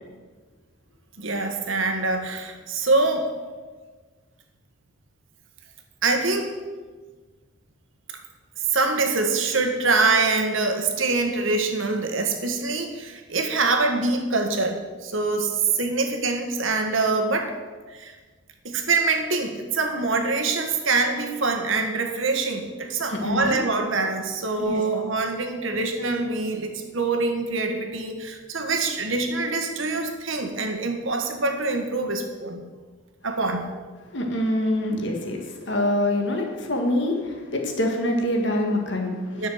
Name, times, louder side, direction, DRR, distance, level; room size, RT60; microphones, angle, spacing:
voice 1, 1.2-3.3 6.0-6.5 8.6-17.5 17.9-18.1 18.6-32.7 33.2-33.7 39.3-39.5, right 3 dB, 75° right, 5 dB, 1.6 m, -24 dB
voice 2, 23.1-23.6 24.6-24.8 34.1-39.4, left 1 dB, 60° left, 2 dB, 1.8 m, -25 dB
10.5 x 6.5 x 7.9 m, 1.4 s
head